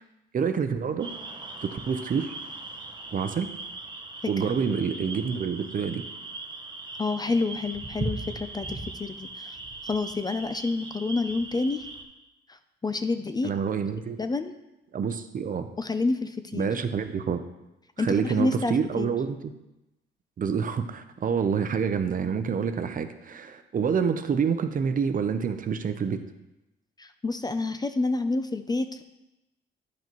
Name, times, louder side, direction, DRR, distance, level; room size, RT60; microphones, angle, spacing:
voice 1, 0.3-1.1 1.6-2.3 3.1-3.5 4.3-6.0 13.4-14.2 14.9-15.7 16.5-17.4 18.0-19.5 20.4-26.2, right 6 dB, 45° right, 9 dB, 0.7 m, -27 dB
sound 1, 1.0-12.0, right 2 dB, 20° right, 1.0 m, -39 dB
voice 2, 7.0-9.6 9.8-11.9 12.5-13.5 14.2-14.5 15.8-16.7 18.0-19.2 27.0-29.0, left 3 dB, 20° left, 10 dB, 0.4 m, -28 dB
10.0 x 5.6 x 3.0 m, 0.94 s
cardioid pair, 90°, 20 cm